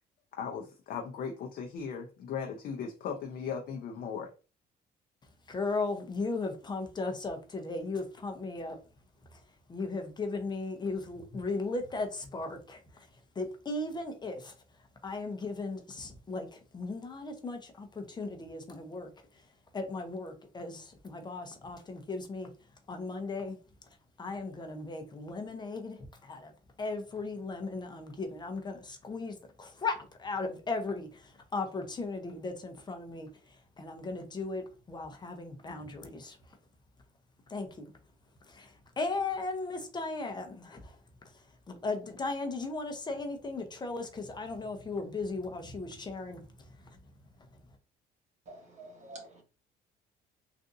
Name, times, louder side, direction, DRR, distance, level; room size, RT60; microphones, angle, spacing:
voice 1, 0.4-4.3, left 6 dB, 60° left, 0.6 m, -37 dB
voice 2, 5.5-8.8 9.3-9.4 9.7-13.1 13.4-14.5 15.0-19.4 19.7-22.5 22.9-23.6 24.2-26.5 26.8-36.4 37.5-37.9 38.5-41.0 41.2-47.0, left 3 dB, 25° left, 0.7 m, -37 dB
voice 3, 48.5-49.4, right 2 dB, 45° right, 1.2 m, -48 dB
3.7 x 2.5 x 2.6 m
cardioid pair, 110°, 17 cm